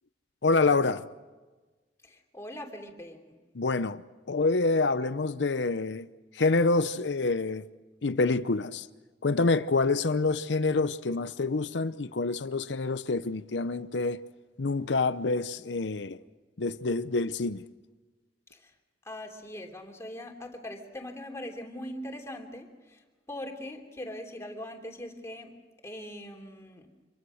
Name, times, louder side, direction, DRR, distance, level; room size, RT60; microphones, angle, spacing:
voice 1, 0.4-1.1 3.5-6.1 6.3-7.6 8.0-8.9 9.2-14.2 14.6-16.2 16.6-17.6, left 3 dB, 90° left, 0.7 m, -27 dB
voice 2, 2.0-3.4 18.5-18.7 19.0-25.5 25.8-26.9, left 1 dB, 15° left, 3.2 m, -41 dB
26.5 x 23.5 x 6.4 m
head